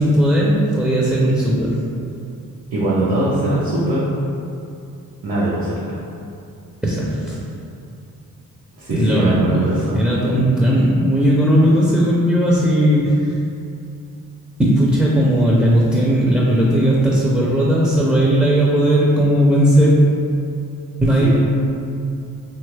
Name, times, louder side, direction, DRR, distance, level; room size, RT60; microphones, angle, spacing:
voice 1, 0.0-1.8 6.8-7.4 8.9-13.4 14.6-20.0 21.0-21.4, equal, 5° right, -6 dB, 0.4 m, -16 dB
voice 2, 2.7-4.0 5.2-6.0 8.8-10.0 21.2-21.4, right 1 dB, 90° right, -9 dB, 0.6 m, -21 dB
2.8 x 2.3 x 3.2 m, 2.5 s
cardioid pair, 70°, 35 cm